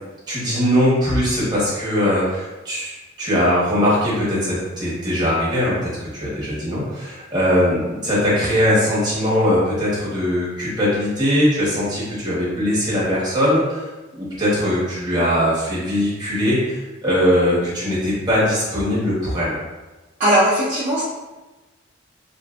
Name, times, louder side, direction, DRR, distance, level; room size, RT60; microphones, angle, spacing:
voice 1, 0.3-13.8 14.1-19.6, equal, 20° right, -8 dB, 0.9 m, -20 dB
voice 2, 20.2-21.0, right 1 dB, 40° right, -10 dB, 0.5 m, -18 dB
2.7 x 2.5 x 2.3 m, 1.2 s
head